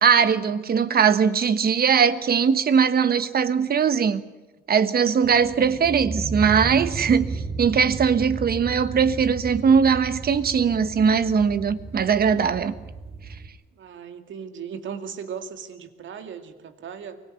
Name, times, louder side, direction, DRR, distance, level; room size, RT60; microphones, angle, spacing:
voice 1, 0.0-4.2 4.7-7.3 7.6-12.7, right 6 dB, 50° right, 1.4 m, -20 dB
sound 1, 5.2-13.5, right 3 dB, 30° right, 3.2 m, -34 dB
voice 2, 13.8-17.2, right 7 dB, 70° right, 2.3 m, -37 dB
24.0 x 18.5 x 9.6 m
cardioid pair, 90°, 20 cm